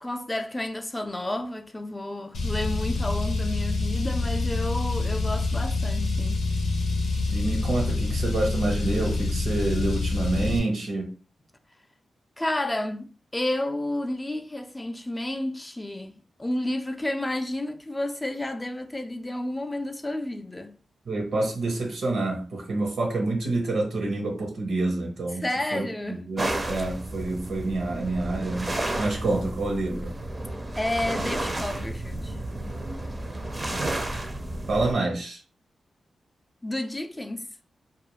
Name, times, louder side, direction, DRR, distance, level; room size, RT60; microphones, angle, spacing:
voice 1, 0.0-6.5 12.4-20.8 25.4-26.2 30.8-32.4 36.6-37.5, left 1 dB, 20° left, 0.4 m, -31 dB
Car, 2.3-10.6, left 3 dB, 85° left, 0.6 m, -26 dB
voice 2, 7.3-11.2 21.1-30.2 34.7-35.4, right 2 dB, 75° right, 0.8 m, -28 dB
sound 1, 26.4-34.9, right 1 dB, 30° right, 0.6 m, -32 dB
2.3 x 2.2 x 3.1 m
cardioid pair, 55°, 0 cm